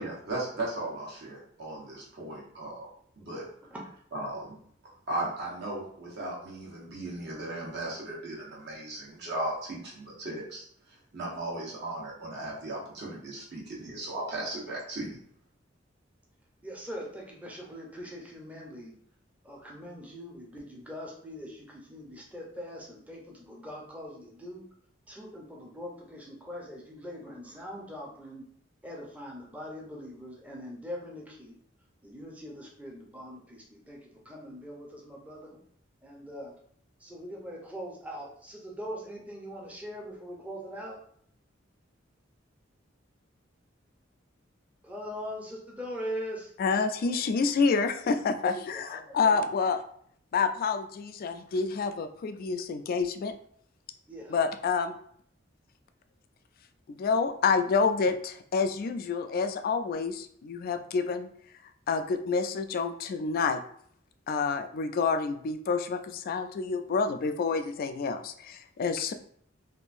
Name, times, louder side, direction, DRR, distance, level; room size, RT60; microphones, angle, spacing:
voice 1, 0.0-2.9 3.2-3.4 4.1-4.5 5.1-10.6 11.1-15.2, right 2 dB, 60° right, -4 dB, 1.1 m, -36 dB
voice 2, 16.6-18.9 19.4-24.6 25.1-28.4 28.8-31.5 32.0-34.0 34.3-35.5 36.0-36.5 37.0-41.0 44.8-46.5 47.0-47.1 48.4-48.6 48.9-49.4 54.1-54.3, equal, 10° right, -2 dB, 0.6 m, -41 dB
voice 3, 46.6-49.8 50.3-53.3 54.3-54.9 56.9-61.3 61.9-63.6 64.3-69.1, left 5 dB, 50° left, 9 dB, 0.3 m, -28 dB
3.5 x 2.6 x 2.5 m, 0.62 s
head